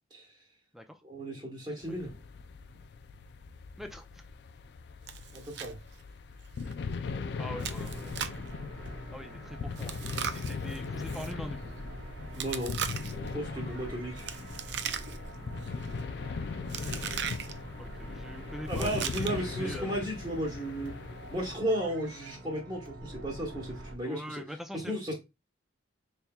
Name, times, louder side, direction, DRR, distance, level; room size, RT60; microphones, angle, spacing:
voice 1, 1.0-2.1 5.3-5.8 12.4-12.8 13.3-14.2 18.7-20.9 21.3-24.4 24.7-25.1, right 1 dB, 25° right, 1.1 m, -34 dB
sound 1, 1.8-21.6, left 4 dB, 60° left, 0.3 m, -40 dB
voice 2, 3.8-4.3 7.3-8.2 8.6-10.0 10.3-11.7 17.8-20.0 24.0-25.0, equal, ahead, 0.4 m, -43 dB
Chewing mastication, 5.1-5.7 6.0-6.1 6.6-6.7 7.6-8.5 9.8-11.3 12.3-13.3 14.2-15.3 15.6-16.0 16.7-17.5 18.7-19.5, right 8 dB, 65° right, 0.4 m, -38 dB
sound 2, 7.3-23.9, right 1 dB, 90° right, 1.1 m, -45 dB
4.2 x 3.4 x 2.3 m
head